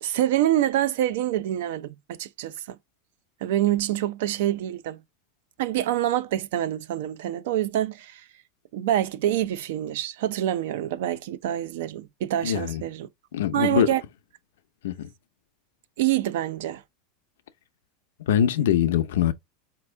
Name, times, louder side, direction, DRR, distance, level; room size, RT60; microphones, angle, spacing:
voice 1, 0.0-2.8 3.4-5.0 5.6-8.2 8.7-13.1 13.5-14.0 16.0-16.8, right 12 dB, 70° right, 0.5 m, -26 dB
voice 2, 12.4-12.8 13.3-13.9 14.8-15.1 18.2-19.3, left 10 dB, 85° left, 0.6 m, -23 dB
4.4 x 2.9 x 3.3 m
supercardioid pair, 150°, 0 cm